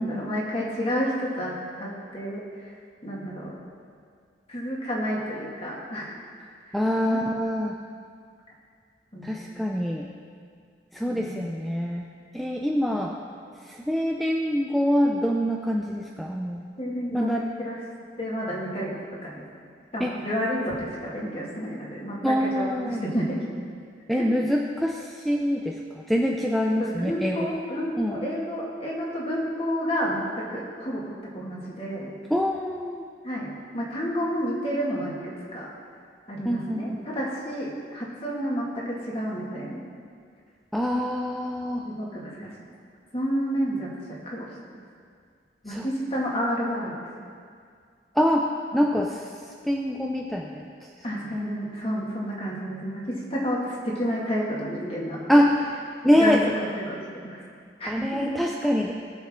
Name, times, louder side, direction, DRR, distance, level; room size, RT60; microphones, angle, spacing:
voice 1, 0.0-2.7 3.0-3.6 4.5-6.2 7.0-7.3 9.1-9.4 11.1-11.5 16.8-17.8 18.2-19.4 19.9-22.1 22.4-23.4 26.8-30.2 30.5-31.0 31.3-32.1 33.2-35.7 36.3-39.8 41.8-42.5 43.1-44.5 45.6-46.9 48.7-48.8 51.0-55.4 56.2-57.4 57.8-58.2, equal, 35° left, -4 dB, 2.2 m, -30 dB
voice 2, 6.7-7.8 9.2-10.1 10.9-12.1 12.3-13.1 13.6-16.6 17.1-17.4 20.0-20.2 22.2-23.0 24.1-25.8 26.1-27.4 28.0-28.2 32.3-33.0 36.4-37.1 40.7-41.9 45.7-45.9 48.2-48.5 48.7-49.3 49.6-50.7 55.3-55.6 56.0-56.5 57.9-58.9, equal, ahead, -1 dB, 0.5 m, -25 dB
19.5 x 6.8 x 3.8 m, 2.2 s
head